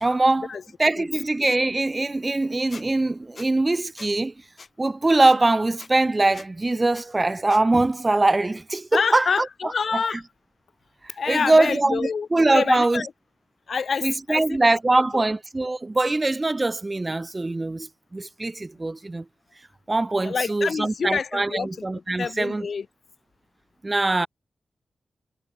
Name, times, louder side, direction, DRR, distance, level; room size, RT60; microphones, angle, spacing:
voice 1, 0.0-0.5 0.8-4.3 4.8-9.3 11.0-13.0 14.0-19.2 19.9-22.7 23.8-24.3, right 2 dB, 20° right, 0.4 m, -22 dB
Squeak, 2.7-2.8 3.4-3.5 4.0-4.1 4.6-4.7 5.2-5.4 5.8-5.9 6.3-6.5 6.9-7.0 7.5-7.6, left 4 dB, 40° left, 6.8 m, -43 dB
voice 2, 8.9-10.2 11.2-12.3 12.5-13.1 13.7-14.6 14.9-15.2 20.2-22.9, left 5 dB, 60° left, 3.1 m, -27 dB
wide cardioid pair, 110°, 0 cm